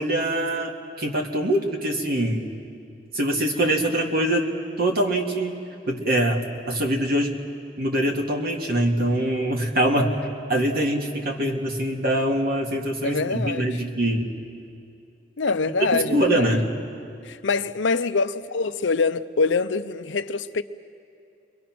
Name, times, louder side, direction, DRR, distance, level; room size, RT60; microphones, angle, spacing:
voice 1, 0.0-2.5 3.1-4.5 4.8-5.6 5.9-6.4 6.7-7.4 7.8-10.1 10.5-14.3 15.9-16.7, right 1 dB, 55° right, 2.2 m, -23 dB
voice 2, 13.0-13.7 15.4-16.5 17.2-20.6, left 4 dB, 85° left, 0.7 m, -24 dB
29.5 x 23.0 x 6.1 m
head